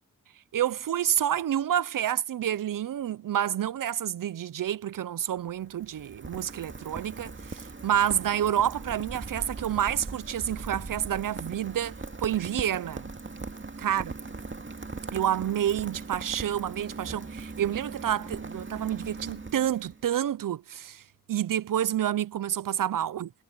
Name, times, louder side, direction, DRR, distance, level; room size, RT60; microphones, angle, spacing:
voice 1, 0.5-13.1 13.8-14.1 15.1-21.0 21.3-23.3, right 10 dB, 70° right, 0.6 m, -29 dB
Rain, 5.3-20.1, right 3 dB, 35° right, 2.2 m, -40 dB
cardioid pair, 40°, 34 cm